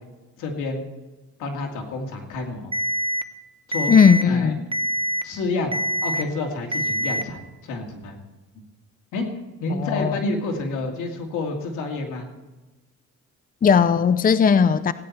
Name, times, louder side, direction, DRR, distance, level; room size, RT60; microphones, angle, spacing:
voice 1, 0.4-0.8 1.4-2.7 3.7-4.0 4.3-4.6 5.2-8.2 9.1-12.3, left 3 dB, 90° left, 2 dB, 2.6 m, -29 dB
Alarm, 2.7-3.2 3.7-4.2 4.7-5.2 5.7-6.2 6.7-7.2, equal, 20° right, 0.9 m, -24 dB
voice 2, 3.9-4.6 9.7-10.2 13.6-14.9, left 6 dB, 30° left, 13 dB, 0.6 m, -17 dB
16.5 x 9.9 x 4.3 m, 1.2 s
cardioid pair, 90°, 30 cm